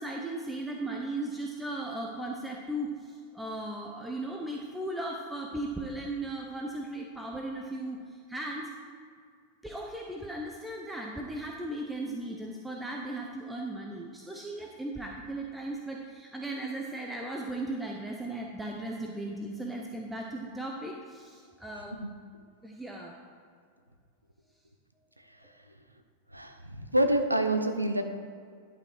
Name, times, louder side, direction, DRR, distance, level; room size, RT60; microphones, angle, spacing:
voice 1, 0.0-8.7 9.6-21.9 22.6-23.2, right 1 dB, 5° right, 0 dB, 0.8 m, -37 dB
voice 2, 26.3-28.0, right 1 dB, 85° right, 7 dB, 0.7 m, -27 dB
11.0 x 5.2 x 4.9 m, 2.1 s
figure-of-eight pair, 90°, 0 cm